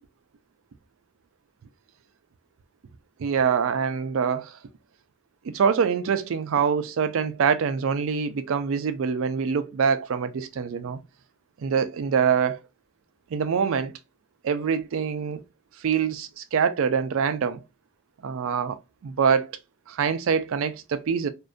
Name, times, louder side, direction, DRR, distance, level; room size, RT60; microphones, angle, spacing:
voice 1, 3.2-4.6 5.4-11.0 11.6-12.6 13.3-13.9 14.4-15.4 15.8-17.6 18.2-19.6 19.9-21.3, right 6 dB, 65° right, 0.3 m, -25 dB
2.5 x 2.1 x 2.4 m
head